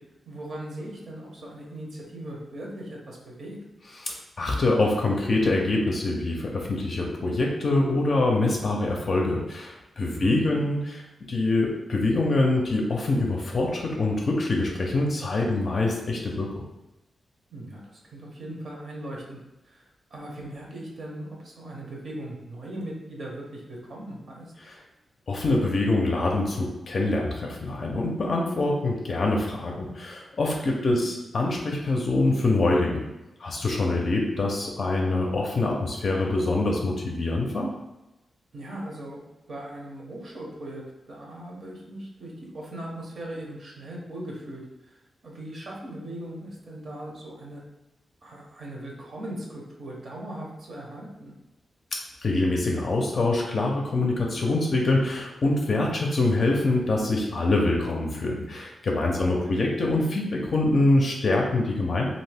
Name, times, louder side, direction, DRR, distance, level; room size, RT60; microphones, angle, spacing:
voice 1, 0.3-3.6 10.1-10.6 17.5-24.5 30.7-31.0 38.5-40.8 41.1-45.0 45.2-47.6 48.2-51.3 59.1-59.6, right 1 dB, 50° right, -2 dB, 0.7 m, -39 dB
voice 2, 4.0-11.0 11.3-16.5 24.6-24.8 25.3-33.0 33.4-37.7 51.9-62.0, left 2 dB, 45° left, 0 dB, 0.4 m, -25 dB
2.7 x 2.6 x 3.3 m, 0.98 s
wide cardioid pair, 135°, 0 cm